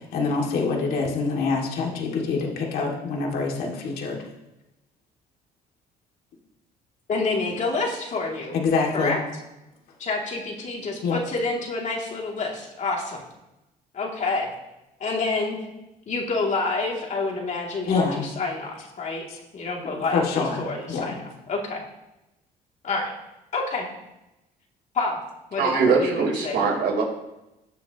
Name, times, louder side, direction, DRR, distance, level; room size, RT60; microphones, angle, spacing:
voice 1, 0.0-4.2 8.5-9.2 11.0-11.2 17.9-18.3 19.3-19.4 19.8-21.1, left 4 dB, 65° left, -1 dB, 2.5 m, -26 dB
voice 2, 7.1-8.5 8.9-9.2 10.0-13.2 13.9-14.5 15.0-15.6 16.1-21.8 22.8-23.1 23.5-23.9 24.9-25.2 25.5-26.6, left 3 dB, 45° left, -1 dB, 2.9 m, -28 dB
voice 3, 25.6-27.0, right 4 dB, 70° right, -2 dB, 4.1 m, -22 dB
20.5 x 6.9 x 3.1 m, 0.94 s
cardioid pair, 110°, 17 cm